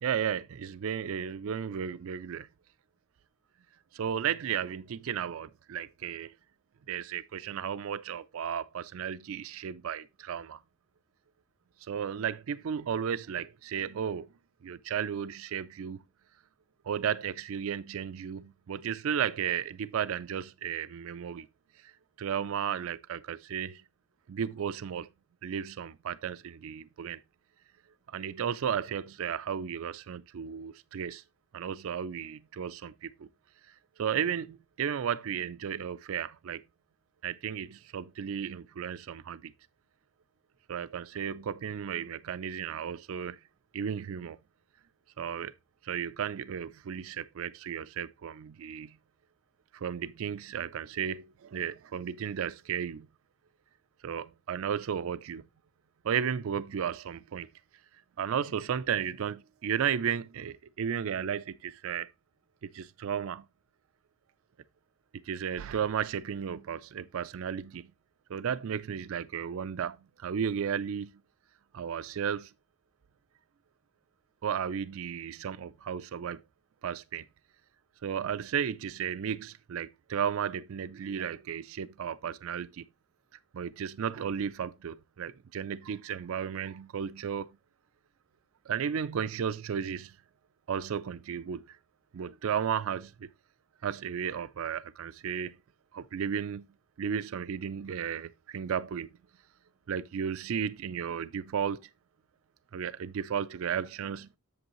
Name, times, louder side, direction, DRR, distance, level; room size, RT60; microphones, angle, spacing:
voice 1, 0.0-2.5 3.9-6.3 6.9-10.6 11.9-14.3 14.6-16.0 16.9-21.5 21.8-21.9 22.2-23.8 24.3-25.1 25.4-27.2 28.1-31.2 31.5-33.3 34.0-36.6 37.2-39.5 40.7-43.4 43.7-44.4 45.2-45.5 45.8-49.0 49.7-53.1 54.0-55.5 56.0-57.5 58.2-62.1 62.6-63.4 65.3-67.8 68.3-71.1 71.7-72.5 74.4-76.4 76.8-77.2 78.0-82.9 83.5-87.5 88.7-90.1 90.7-91.8 92.1-93.3 93.8-95.6 95.9-96.6 97.0-99.1 99.9-101.8 102.7-104.4, right 8 dB, 65° right, 0.4 m, -34 dB
7.9 x 7.0 x 3.0 m
head